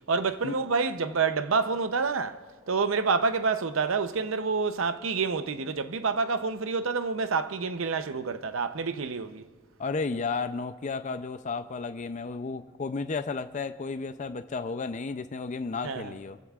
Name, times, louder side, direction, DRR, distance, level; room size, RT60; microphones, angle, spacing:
voice 1, 0.1-2.4 2.7-9.4 15.8-16.1, right 4 dB, 70° right, 0.7 m, -28 dB
voice 2, 9.8-16.4, left 4 dB, 35° left, 0.4 m, -33 dB
28.5 x 15.5 x 2.4 m
head